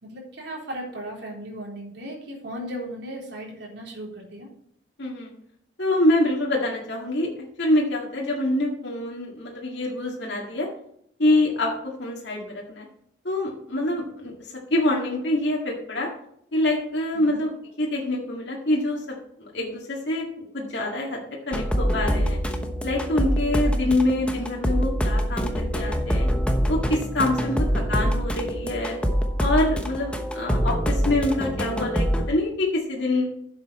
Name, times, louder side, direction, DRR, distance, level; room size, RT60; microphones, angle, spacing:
voice 1, 0.0-4.5 17.1-17.4 27.3-27.7, equal, 65° right, -2 dB, 3.8 m, -36 dB
voice 2, 5.0-5.3 5.8-7.3 7.6-10.7 11.2-12.9 13.2-16.1 16.5-17.5 17.8-19.0 19.4-21.2 21.5-22.4 22.8-26.3 26.7-29.0 29.4-33.3, left 1 dB, 70° left, -3 dB, 2.0 m, -25 dB
sound 1, 21.5-32.3, equal, 5° left, 1.0 m, -25 dB
10.0 x 7.6 x 4.3 m, 0.71 s
head